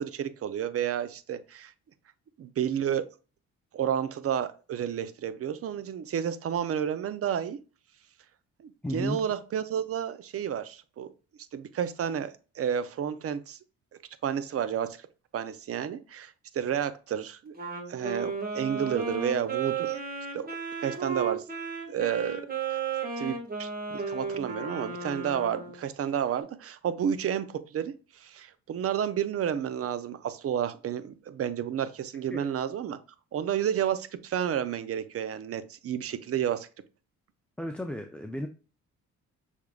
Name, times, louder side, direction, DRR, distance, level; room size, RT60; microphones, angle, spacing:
voice 1, 0.0-1.7 2.4-3.1 3.7-7.6 8.6-11.1 11.5-13.6 14.2-15.0 15.3-17.5 17.9-20.0 20.3-20.5 20.8-21.4 21.9-22.8 23.2-33.0 33.3-36.7, right 9 dB, 50° right, 13 dB, 0.6 m, -31 dB
voice 2, 8.8-9.2 32.3-32.5 37.6-38.5, equal, 5° left, 4 dB, 0.5 m, -33 dB
Wind instrument woodwind instrument, 17.5-25.8, right 5 dB, 30° right, 1.6 m, -34 dB
6.3 x 3.6 x 2.3 m, 0.34 s
cardioid pair, 90°, 30 cm